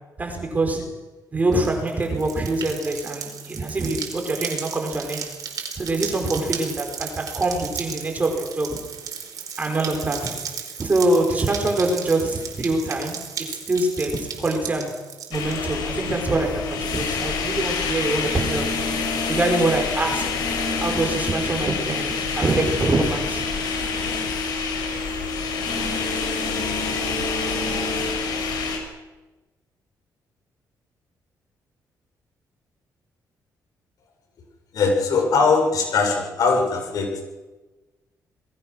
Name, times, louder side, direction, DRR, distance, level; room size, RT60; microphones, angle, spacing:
voice 1, 0.2-0.9 1.3-5.3 5.8-8.8 9.6-10.4 10.8-15.0 15.3-18.7 19.3-20.4 20.8-23.4, right 2 dB, 25° right, 3 dB, 4.9 m, -24 dB
sound 1, 1.5-15.7, right 7 dB, 60° right, 4.7 m, -35 dB
sound 2, 15.3-28.8, left 4 dB, 90° left, 6.3 m, -26 dB
voice 2, 34.7-37.2, left 4 dB, 60° left, 2 dB, 7.5 m, -20 dB
28.0 x 21.0 x 6.4 m, 1.1 s
cardioid pair, 145°, 7 cm